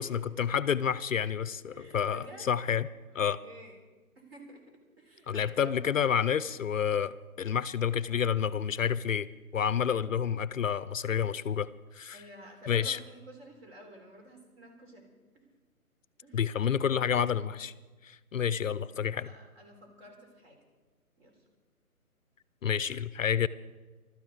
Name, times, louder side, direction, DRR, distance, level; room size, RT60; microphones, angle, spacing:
voice 1, 0.0-2.9 3.1-3.4 5.3-12.2 12.7-13.0 16.3-17.7 18.0-19.3 22.6-23.5, left 8 dB, 60° left, 17 dB, 0.5 m, -29 dB
voice 2, 1.7-2.5 3.1-3.8 4.2-4.6 5.0-5.8 8.0-8.2 12.1-15.4 16.2-16.6 18.9-20.6 21.2-21.4, right 1 dB, 40° right, 2 dB, 3.9 m, -51 dB
22.0 x 13.0 x 4.0 m, 1.3 s
hypercardioid pair, 155°, 45 cm